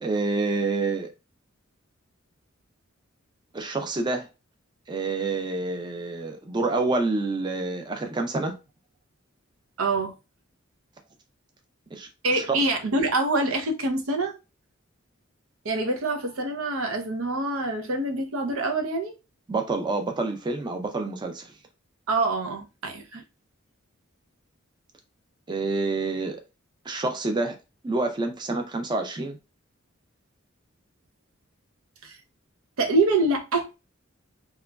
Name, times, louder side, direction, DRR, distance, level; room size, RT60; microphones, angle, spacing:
voice 1, 0.0-1.1 3.5-4.3 4.9-8.5 11.9-12.1 12.3-12.4 19.5-21.5 25.5-26.4 26.9-27.6 27.8-29.4, right 3 dB, 20° right, 0.4 m, -27 dB
voice 2, 9.8-10.1 12.2-14.4 15.6-19.2 22.1-23.2 32.0-32.2 32.8-33.8, right 2 dB, 90° right, 0.6 m, -25 dB
2.9 x 2.4 x 2.2 m
head